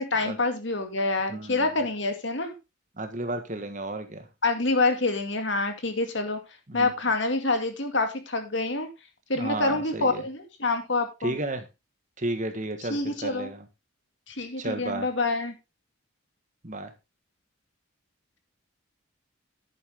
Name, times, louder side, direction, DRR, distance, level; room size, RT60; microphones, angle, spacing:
voice 1, 0.0-2.5 4.4-6.4 6.7-8.9 9.3-11.3 12.9-13.5 14.3-15.5, left 3 dB, 60° left, 6 dB, 2.3 m, -27 dB
voice 2, 1.3-1.7 3.0-4.3 6.7-6.9 9.4-10.2 11.2-11.7 12.2-13.7 14.6-15.1 16.6-16.9, right 2 dB, 35° right, 8 dB, 1.4 m, -33 dB
11.0 x 8.9 x 3.6 m, 0.25 s
head